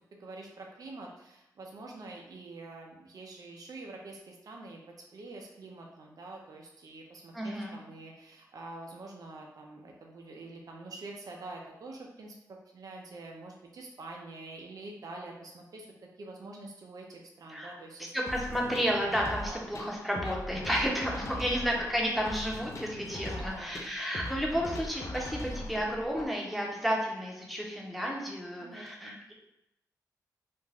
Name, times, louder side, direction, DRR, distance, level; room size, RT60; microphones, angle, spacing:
voice 1, 0.1-4.8 5.1-15.9 16.2-18.1 19.5-19.7 21.1-21.5 23.2-23.9 28.6-29.2, right 2 dB, 60° right, 0 dB, 0.5 m, -46 dB
voice 2, 7.3-7.8 17.5-17.8 18.1-29.3, equal, ahead, -1 dB, 0.8 m, -32 dB
sound 1, 18.3-26.3, left 1 dB, 45° left, 0.5 m, -40 dB
2.4 x 2.1 x 3.3 m, 0.86 s
cardioid pair, 45°, 7 cm